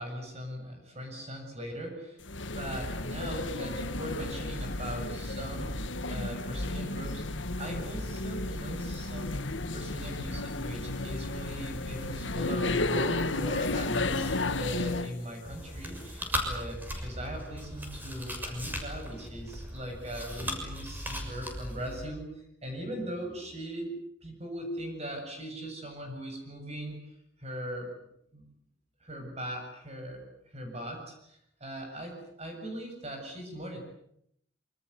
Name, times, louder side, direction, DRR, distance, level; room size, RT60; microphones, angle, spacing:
voice 1, 0.0-2.2 2.5-5.8 6.1-7.2 7.6-9.4 9.7-28.0 28.3-28.5 29.0-33.8, equal, 35° right, 3 dB, 7.7 m, -39 dB
sound 1, 2.2-15.2, left 2 dB, 90° left, 1.9 m, -33 dB
Chewing mastication, 15.4-22.1, equal, 10° right, 6.6 m, -37 dB
27.0 x 25.5 x 8.2 m, 0.74 s
head